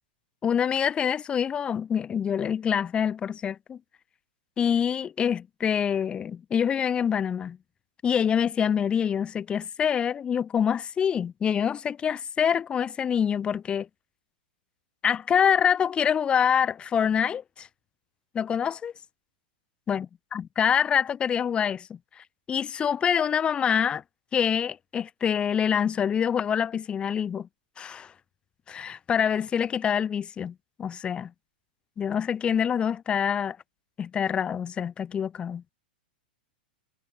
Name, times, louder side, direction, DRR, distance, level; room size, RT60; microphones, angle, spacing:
voice 1, 0.4-3.8 4.6-7.6 8.0-13.9 15.0-17.7 18.3-18.9 19.9-20.1 20.3-24.0 24.3-27.5 27.8-28.1 28.7-31.3 32.0-33.6 34.0-35.6, left 8 dB, 20° left, 0.4 m, -26 dB
hypercardioid pair, 115°, 5 cm